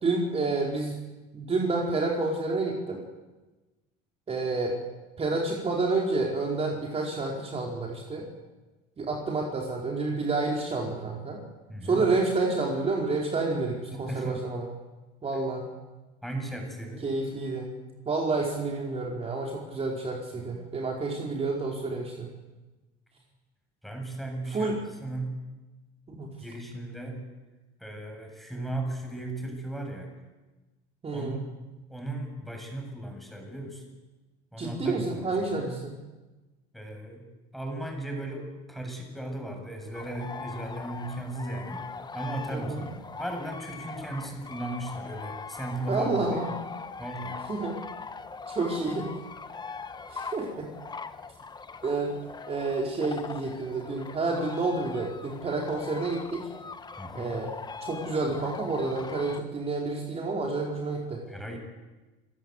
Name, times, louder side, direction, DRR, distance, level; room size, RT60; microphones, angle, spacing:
voice 1, 0.0-1.0 1.3-3.0 4.3-4.8 5.2-8.3 9.0-11.4 11.8-14.7 15.2-15.7 17.0-17.7 18.1-22.3 24.5-24.8 26.1-26.3 31.0-31.4 34.6-36.0 42.5-42.9 45.9-46.5 47.5-47.8 48.5-49.1 50.1-50.7 51.8-52.2 52.5-56.5 57.1-57.5 57.8-61.2, right 3 dB, 30° right, 0 dB, 4.5 m, -29 dB
voice 2, 11.7-12.0 13.9-14.4 16.2-17.1 20.4-20.7 23.8-24.7 25.0-25.4 26.4-27.2 27.8-30.2 31.1-31.4 31.7-33.8 34.5-35.3 35.6-35.7 36.7-37.3 37.5-41.9 42.1-46.3 47.0-47.4 57.0-57.4 61.3-61.6, right 1 dB, ahead, 2 dB, 7.8 m, -36 dB
sound 1, 39.9-59.4, left 4 dB, 20° left, 1.4 m, -41 dB
29.5 x 16.5 x 8.2 m, 1.2 s
supercardioid pair, 105°, 21 cm